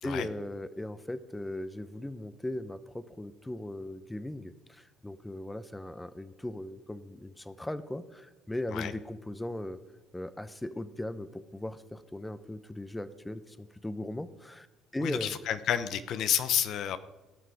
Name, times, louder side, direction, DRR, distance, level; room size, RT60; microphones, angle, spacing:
voice 1, 0.0-9.8 10.1-14.7 14.9-15.3, left 1 dB, 10° left, 14 dB, 0.7 m, -38 dB
voice 2, 15.0-17.0, left 9 dB, 65° left, 12 dB, 0.7 m, -30 dB
17.5 x 5.9 x 4.9 m, 1.1 s
supercardioid pair, 80°, 0 cm